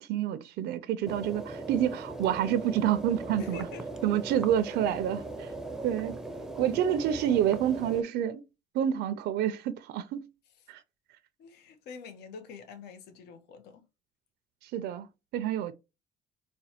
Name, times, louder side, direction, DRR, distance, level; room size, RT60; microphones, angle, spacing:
voice 1, 0.0-3.7 4.0-5.5 5.8-6.1 6.6-8.4 8.7-10.3 10.7-10.8 14.6-15.1 15.3-15.7, right 10 dB, 75° right, 0.4 m, -28 dB
sound 1, 1.1-8.0, right 2 dB, 5° right, 0.5 m, -39 dB
voice 2, 3.4-3.9 11.4-13.8, left 5 dB, 80° left, 0.6 m, -46 dB
4.2 x 2.1 x 2.8 m
cardioid pair, 110°, 17 cm